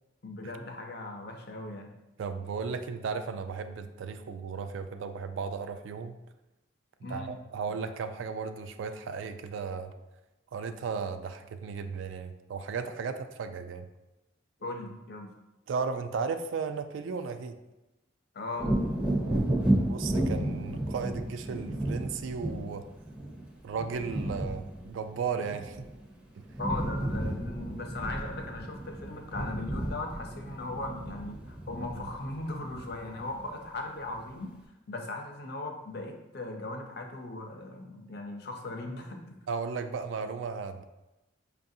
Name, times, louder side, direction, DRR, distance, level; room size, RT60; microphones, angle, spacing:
voice 1, 0.2-1.9 7.0-7.4 14.6-15.3 18.3-18.7 26.6-34.5 34.9-39.4, left 2 dB, 50° left, 3 dB, 0.5 m, -38 dB
voice 2, 2.2-6.2 7.1-9.9 10.5-13.9 15.7-17.6 19.2-19.5 19.9-22.8 23.6-25.9 39.5-40.8, right 5 dB, 70° right, 9 dB, 0.3 m, -35 dB
Wind / Thunder, 18.5-26.1 26.4-33.6 34.1-34.2, right 1 dB, 5° right, 0.5 m, -32 dB
5.5 x 2.5 x 2.6 m, 0.97 s
head